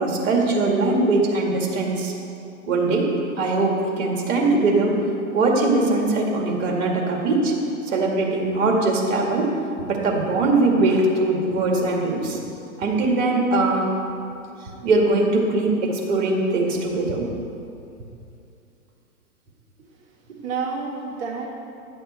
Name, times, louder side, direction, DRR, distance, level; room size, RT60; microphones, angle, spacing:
voice 1, 0.0-2.1 2.7-3.1 3.4-5.0 5.3-7.5 7.8-9.5 9.8-12.4 12.8-13.9 14.8-17.3, right 2 dB, 60° right, 0 dB, 2.0 m, -21 dB
voice 2, 19.8-21.5, right 5 dB, 35° right, -2 dB, 1.8 m, -31 dB
11.0 x 7.8 x 4.3 m, 2.6 s
hypercardioid pair, 120°, 43 cm